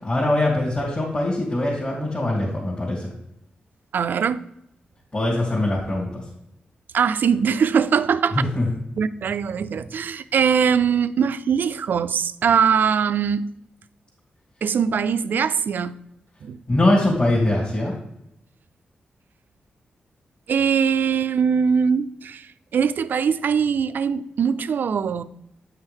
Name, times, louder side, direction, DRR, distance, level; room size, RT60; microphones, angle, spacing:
voice 1, 0.0-3.1 5.1-6.2 8.3-8.7 16.7-17.9, left 1 dB, 40° left, 2.5 m, -22 dB
voice 2, 3.9-4.4 6.9-8.4 9.0-13.5 14.6-15.9 16.4-16.6 20.5-22.5 22.7-25.2, right 7 dB, 70° right, 0.4 m, -21 dB
8.7 x 5.6 x 3.5 m
cardioid pair, 90°, 3 cm